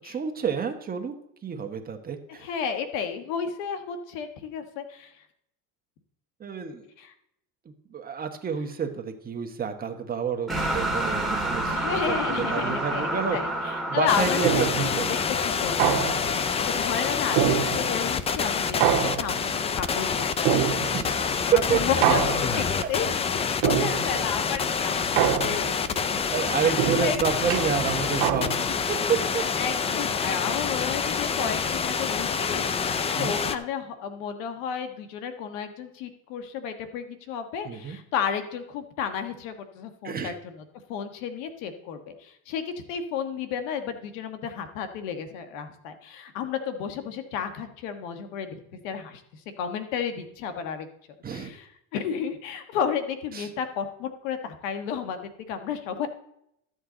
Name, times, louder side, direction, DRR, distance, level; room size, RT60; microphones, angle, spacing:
voice 1, 0.0-1.1 1.4-2.5 6.4-6.8 7.9-13.4 13.9-15.1 18.8-19.0 20.9-21.4 21.7-21.8 22.5-22.9 26.2-28.6 28.9-29.4 33.1-33.3 37.6-38.0 40.0-40.3 51.2-51.5 53.3-53.5, right 6 dB, 25° right, 4 dB, 1.2 m, -29 dB
voice 2, 2.4-5.2 7.0-7.1 11.7-15.2 15.4-20.6 21.5-23.1 23.3-26.3 26.6-27.3 28.4-28.5 29.3-32.6 33.2-40.6 40.9-50.9 51.3-56.1, left 7 dB, 85° left, 8 dB, 1.5 m, -32 dB
sound 1, 10.5-16.5, right 1 dB, ahead, 2.2 m, -30 dB
sound 2, 14.1-33.6, left 6 dB, 15° left, 0.3 m, -27 dB
sound 3, 14.4-15.0 15.8-16.5 17.4-18.1 18.8-19.6 20.4-21.2 22.0-22.7 23.6-24.3 25.2-25.9 26.8-28.8, right 10 dB, 70° right, 1.2 m, -25 dB
13.0 x 7.9 x 3.9 m, 0.76 s
cardioid pair, 135°, 38 cm